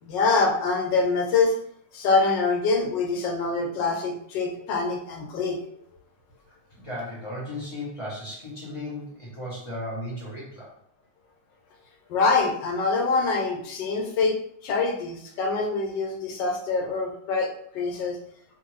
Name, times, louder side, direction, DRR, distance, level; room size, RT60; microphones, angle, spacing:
voice 1, 0.0-1.6 1.9-5.6 12.1-14.3 14.6-17.5 17.7-18.2, left 4 dB, 80° left, 1 dB, 1.4 m, -24 dB
voice 2, 6.7-10.7, left 1 dB, 30° left, -7 dB, 0.5 m, -35 dB
2.6 x 2.5 x 3.0 m, 0.67 s
omnidirectional pair, 1.9 m